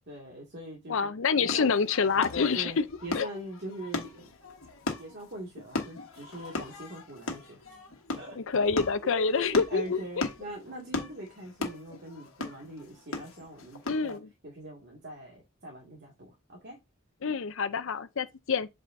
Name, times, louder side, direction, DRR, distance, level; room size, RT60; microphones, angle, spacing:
voice 1, 0.1-1.0 1.4-1.7 2.5-4.3 5.0-7.6 8.1-8.3 9.0-14.2 14.4-16.8, right 1 dB, 55° right, 2.1 m, -42 dB
voice 2, 0.9-2.8 3.1-3.3 8.4-10.0 13.9-14.3 17.2-18.7, left 5 dB, 70° left, 0.6 m, -27 dB
sound 1, 1.4-14.2, left 3 dB, 85° left, 1.3 m, -37 dB
7.7 x 4.8 x 2.6 m
head